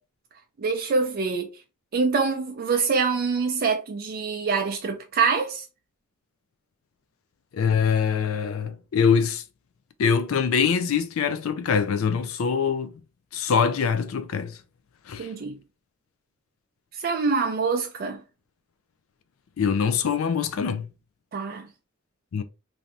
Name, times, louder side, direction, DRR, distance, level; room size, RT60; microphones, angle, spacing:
voice 1, 0.6-1.5 1.9-5.6 15.2-15.6 16.9-18.2 21.3-21.7, right 4 dB, 45° right, 0.4 m, -25 dB
voice 2, 7.5-9.4 10.0-13.0 13.3-14.6 15.1-15.3 19.6-20.9 22.3-22.4, left 6 dB, 80° left, 0.4 m, -24 dB
3.2 x 2.6 x 2.5 m
head